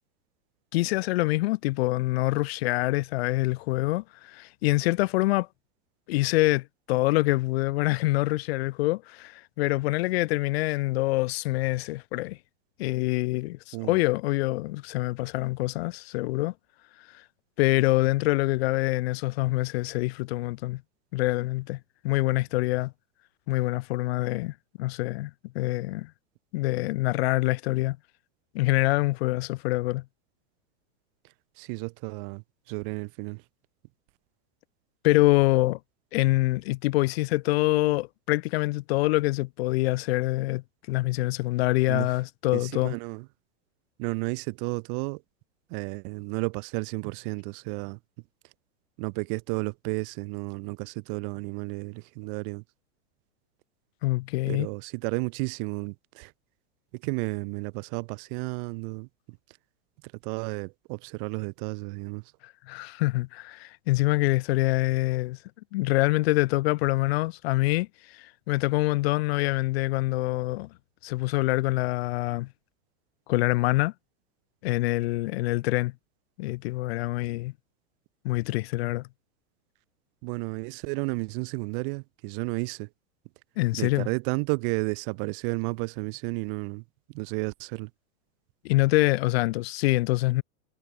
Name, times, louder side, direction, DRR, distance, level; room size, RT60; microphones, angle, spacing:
voice 1, 0.7-5.5 6.1-12.4 12.8-16.5 17.6-20.8 21.1-22.9 23.5-26.1 26.5-28.0 28.5-30.0 35.0-35.8 36.1-43.0 54.0-54.7 62.4-65.4 65.7-70.7 71.0-72.5 73.3-73.9 74.6-75.9 76.4-77.5 78.2-79.1 83.6-84.1 88.6-90.4, left 20 dB, 50° left, 3.0 m, -25 dB
voice 2, 31.6-33.4 41.9-42.1 42.5-43.3 44.0-45.2 45.7-48.0 49.0-52.6 54.5-56.3 56.9-59.1 60.0-62.2 80.2-82.9 83.7-87.9, right 36 dB, 40° right, 5.2 m, -32 dB
supercardioid pair, 165°, 40 cm